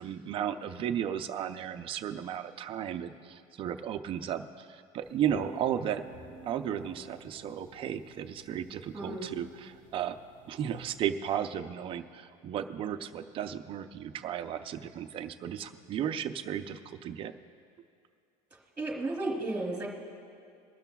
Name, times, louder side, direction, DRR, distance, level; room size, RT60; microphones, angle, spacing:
voice 1, 0.0-6.0 6.4-10.2 10.5-17.3, right 9 dB, 30° right, 8 dB, 0.5 m, -34 dB
sound 1, 5.0-11.0, right 1 dB, 25° left, 1.7 m, -50 dB
voice 2, 8.9-9.3 18.8-19.9, right 2 dB, 10° right, -1 dB, 2.8 m, -33 dB
23.0 x 12.5 x 2.3 m, 2.4 s
cardioid pair, 160°, 18 cm